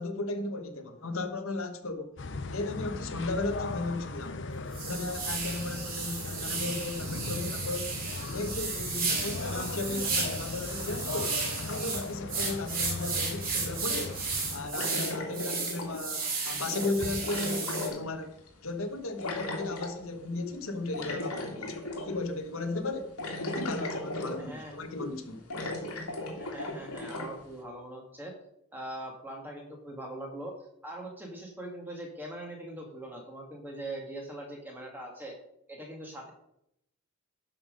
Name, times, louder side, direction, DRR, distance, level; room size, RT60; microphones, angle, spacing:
voice 1, 0.0-2.2 2.5-4.4 4.8-7.9 8.2-11.4 11.6-14.2 14.5-18.4 18.6-21.8 22.0-23.2 23.4-25.4, left 2 dB, 70° left, 1.2 m, -35 dB
sound 1, 2.2-14.7, left 3 dB, 55° left, 0.7 m, -38 dB
sound 2, 3.5-3.6 4.1-4.2 4.7-17.9, right 4 dB, 40° right, 2.8 m, -34 dB
sound 3, 14.7-16.2 16.7-18.5 19.2-20.0 20.9-22.2 22.6-22.7 23.2-24.6 25.0-25.1 25.5-27.3, left 1 dB, 90° left, 2.2 m, -36 dB
voice 2, 24.4-24.7 26.4-28.4 28.7-30.6 30.8-35.4 35.7-36.3, right 1 dB, 10° right, 2.0 m, -41 dB
11.5 x 5.8 x 5.2 m
head